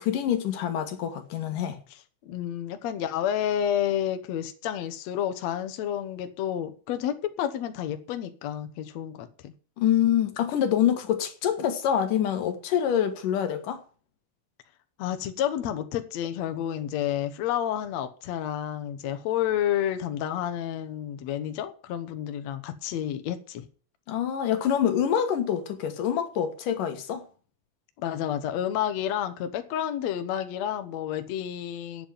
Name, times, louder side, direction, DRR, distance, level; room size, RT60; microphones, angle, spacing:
voice 1, 0.0-1.8 9.8-13.8 24.1-27.2, left 9 dB, 80° left, 3.0 m, -26 dB
voice 2, 1.9-9.5 15.0-23.7 28.0-32.1, left 10 dB, 65° left, 2.1 m, -30 dB
8.8 x 7.9 x 9.1 m
omnidirectional pair, 3.8 m